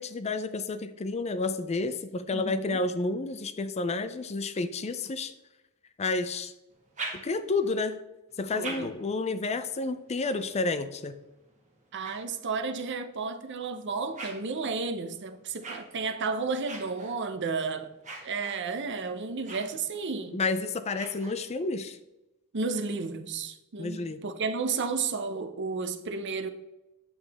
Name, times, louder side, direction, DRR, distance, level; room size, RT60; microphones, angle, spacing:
voice 1, 0.0-5.3 6.0-6.5 7.1-8.0 8.4-11.2 20.3-22.0 23.8-24.2, left 3 dB, 30° left, 0.4 m, -30 dB
voice 2, 2.3-2.8 8.5-8.9 11.9-17.9 18.2-20.4 22.5-26.5, right 4 dB, 55° right, 0.7 m, -32 dB
sound 1, 6.7-7.7 8.3-12.9 13.5-21.8, right 3 dB, 35° right, 1.7 m, -46 dB
8.8 x 7.0 x 3.5 m
head